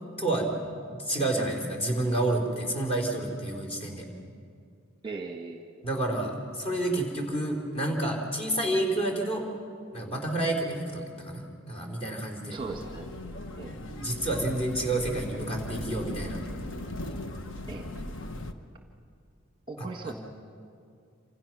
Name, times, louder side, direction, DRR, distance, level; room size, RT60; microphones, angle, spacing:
voice 1, 0.2-0.6 0.9-4.1 5.8-9.4 9.9-12.6 13.8-16.4 19.8-20.1, right 1 dB, 25° left, 1 dB, 3.9 m, -29 dB
voice 2, 5.0-5.7 12.5-13.1 13.6-13.8 17.7-17.9 19.7-20.1, right 3 dB, 20° right, 3 dB, 1.3 m, -38 dB
sound 1, 12.6-18.5, left 1 dB, 55° left, 1.2 m, -38 dB
27.5 x 26.5 x 6.1 m, 2.4 s
head